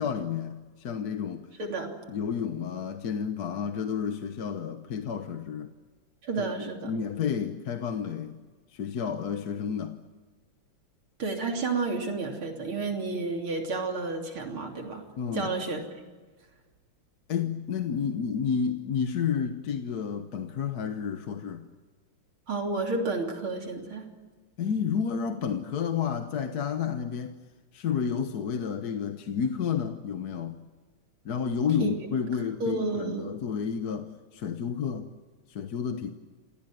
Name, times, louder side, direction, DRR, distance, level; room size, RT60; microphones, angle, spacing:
voice 1, 0.0-1.5 2.1-5.7 6.4-6.5 6.8-8.4 8.7-10.0 15.2-15.5 17.3-21.6 24.6-27.4 27.7-30.6 31.2-35.1 35.5-36.1, left 7 dB, 55° left, 8 dB, 1.5 m, -31 dB
voice 2, 1.6-1.9 6.2-6.9 11.2-15.0 15.3-15.8 22.5-24.1 31.8-31.9 32.3-33.3, right 3 dB, 85° right, 3 dB, 4.0 m, -31 dB
28.0 x 18.0 x 9.3 m, 1.4 s
omnidirectional pair, 2.3 m